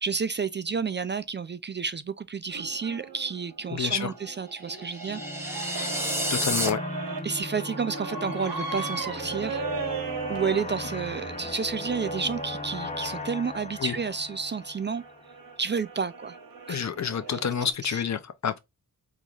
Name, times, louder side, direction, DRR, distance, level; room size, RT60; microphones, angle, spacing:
voice 1, 0.0-6.1 7.2-9.6 10.3-15.0 15.6-16.4 16.7-16.9 17.8-18.0, right 5 dB, 35° right, 0.4 m, -31 dB
sound 1, 2.5-13.3 14.0-17.7, right 5 dB, 70° right, 1.2 m, -38 dB
voice 2, 3.7-4.1 6.3-6.8 13.8-14.0 16.7-18.6, left 7 dB, 50° left, 0.7 m, -28 dB
sound 2, 4.7-6.7, equal, 5° right, 1.1 m, -30 dB
sound 3, 5.0-15.4, left 2 dB, 20° left, 0.8 m, -37 dB
3.7 x 3.1 x 2.4 m
cardioid pair, 60°, 35 cm